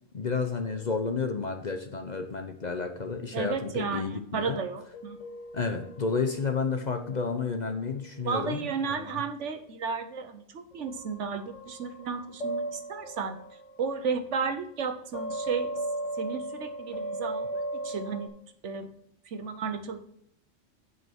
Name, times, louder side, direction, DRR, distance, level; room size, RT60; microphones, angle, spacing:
voice 1, 0.1-4.6 5.5-9.2, left 4 dB, 40° left, 5 dB, 0.8 m, -31 dB
sound 1, 0.6-1.8 4.9-8.8 10.7-14.6 15.1-18.3, right 1 dB, 80° left, 2.1 m, -38 dB
voice 2, 3.3-5.2 8.2-13.4 13.8-15.7 16.2-18.3 18.6-18.9 19.3-20.0, right 5 dB, 70° right, 8 dB, 1.2 m, -33 dB
9.4 x 5.5 x 4.5 m, 0.72 s
omnidirectional pair, 1.3 m